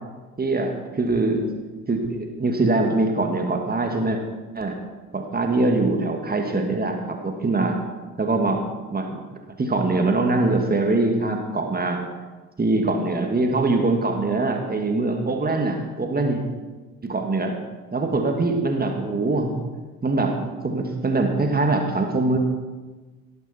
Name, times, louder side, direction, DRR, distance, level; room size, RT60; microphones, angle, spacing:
voice 1, 0.4-1.4 1.9-4.2 4.5-4.8 5.1-7.8 8.2-9.2 9.6-12.0 12.6-16.4 17.0-17.5 17.9-19.6 20.0-22.4, right 2 dB, 20° right, 3 dB, 2.3 m, -23 dB
18.0 x 12.0 x 4.6 m, 1.3 s
figure-of-eight pair, 55°, 44 cm